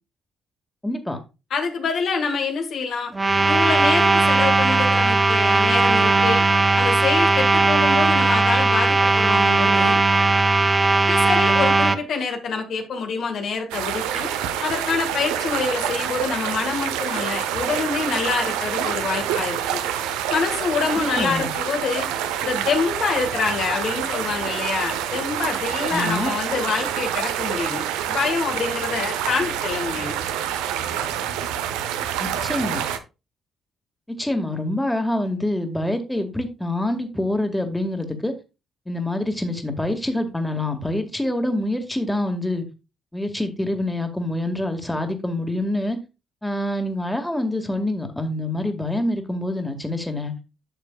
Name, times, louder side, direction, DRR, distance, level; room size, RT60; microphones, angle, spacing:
voice 1, 0.8-1.2 21.2-21.5 25.9-26.3 32.2-32.8 34.2-38.3 38.9-42.6 43.1-46.0 46.4-50.3, left 1 dB, 10° left, 1.9 m, -26 dB
voice 2, 1.5-3.1 3.5-6.4 6.7-10.0 10.4-10.5 11.1-14.3 14.6-19.8 20.3-22.1 22.4-27.8 28.1-30.1, left 5 dB, 65° left, 1.6 m, -26 dB
sound 1, 3.1-12.0, right 3 dB, 25° right, 1.0 m, -18 dB
sound 2, 13.7-33.0, right 10 dB, 80° right, 0.8 m, -27 dB
10.5 x 6.5 x 2.4 m
hypercardioid pair, 45°, 0 cm